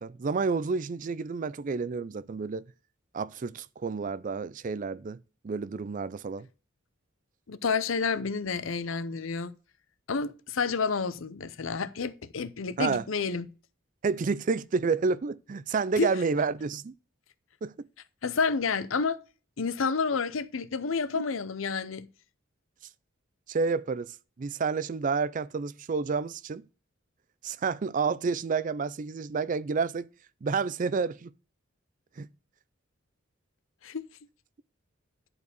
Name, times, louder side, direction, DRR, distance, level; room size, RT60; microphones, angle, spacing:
voice 1, 0.0-2.7 3.1-5.2 5.4-6.5 12.8-13.0 14.0-16.9 17.6-17.7 21.1-21.2 23.5-26.6 27.4-30.1 30.4-31.3 32.2-32.3, right 4 dB, 40° right, 0.4 m, -30 dB
voice 2, 7.5-9.5 10.1-13.5 16.0-16.1 18.2-19.2 19.6-22.1 33.8-34.1, left 5 dB, 80° left, 0.7 m, -29 dB
10.5 x 4.7 x 6.7 m
head